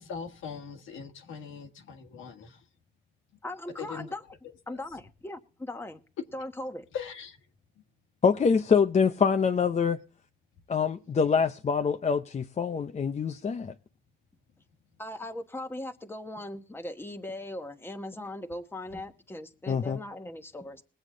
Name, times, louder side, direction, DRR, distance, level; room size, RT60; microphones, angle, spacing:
voice 1, 0.0-2.6 3.8-4.1 4.7-4.8 6.9-7.4, left 6 dB, 80° left, 1.6 m, -40 dB
voice 2, 3.4-4.2 4.7-6.0 6.3-6.8 15.0-20.8, left 1 dB, 10° left, 1.2 m, -39 dB
voice 3, 8.2-10.0 10.7-13.7 19.7-20.0, left 6 dB, 35° left, 0.7 m, -25 dB
21.0 x 8.0 x 3.9 m
cardioid pair, 90°, 20 cm